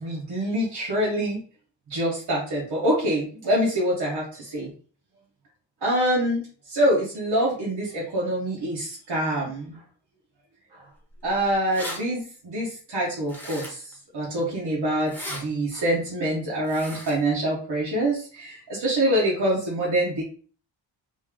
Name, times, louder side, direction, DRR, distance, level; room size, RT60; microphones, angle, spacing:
voice 1, 0.0-1.4 1.9-4.7 5.8-6.4 6.7-9.8 10.7-10.8 11.2-20.2, right 1 dB, 60° right, -5 dB, 1.1 m, -25 dB
sound 1, 11.3-11.4 11.5-12.0 13.3-13.9 15.0-15.4 16.6-17.2, left 1 dB, 5° left, 1.1 m, -36 dB
3.1 x 2.6 x 3.6 m, 0.42 s
wide cardioid pair, 120°, 46 cm